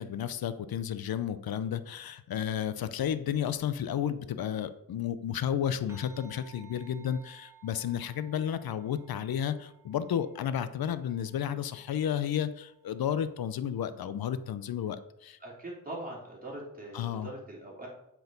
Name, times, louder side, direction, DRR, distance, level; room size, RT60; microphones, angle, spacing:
voice 1, 0.0-15.4 16.9-17.3, left 9 dB, 80° left, 13 dB, 0.6 m, -32 dB
sound 1, 5.9-14.6, right 7 dB, 10° right, 2.1 m, -59 dB
voice 2, 15.4-17.9, right 1 dB, 25° right, -4 dB, 3.1 m, -42 dB
7.8 x 4.6 x 5.4 m, 0.82 s
wide cardioid pair, 100°, 35 cm